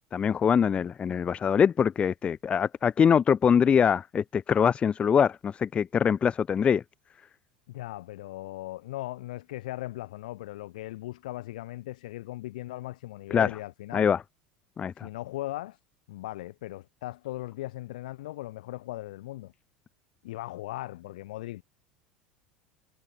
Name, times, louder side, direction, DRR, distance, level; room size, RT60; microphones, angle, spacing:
voice 1, 0.1-6.8 13.3-13.5 13.9-14.2 14.8-15.1, left 7 dB, 25° left, 0.5 m, -23 dB
voice 2, 7.7-14.1 14.9-15.8 16.1-19.5 20.2-21.6, left 16 dB, 60° left, 0.9 m, -38 dB
figure-of-eight pair, 75°, 5 cm